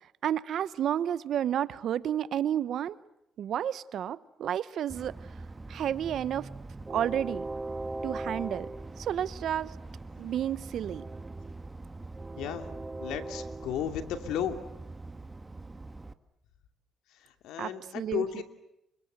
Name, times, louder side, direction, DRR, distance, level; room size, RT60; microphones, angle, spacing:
voice 1, 0.2-3.0 3.4-5.1 5.7-6.5 6.9-7.4 8.0-8.7 9.0-9.7 10.2-11.0 17.6-17.7 17.9-18.4, right 10 dB, 70° right, 17 dB, 1.0 m, -31 dB
Train, 4.9-16.1, right 2 dB, 20° right, 1.6 m, -41 dB
voice 2, 12.4-12.7 13.0-14.6 17.1-18.4, left 9 dB, 90° left, 7 dB, 2.6 m, -34 dB
28.5 x 24.5 x 8.1 m, 0.85 s
cardioid pair, 90°, 0 cm